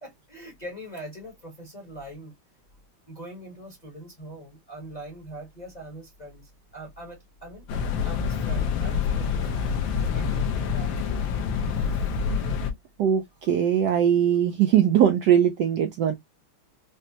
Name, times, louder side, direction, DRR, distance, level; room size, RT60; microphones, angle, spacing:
voice 1, 0.0-2.3 3.1-7.6 8.0-9.6 10.0-11.2, right 1 dB, 30° left, 0.8 m, -42 dB
sound 1, 7.7-12.7, left 6 dB, 70° left, 1.5 m, -26 dB
voice 2, 13.0-16.1, right 9 dB, 80° right, 1.0 m, -21 dB
5.2 x 2.1 x 2.7 m
omnidirectional pair, 2.3 m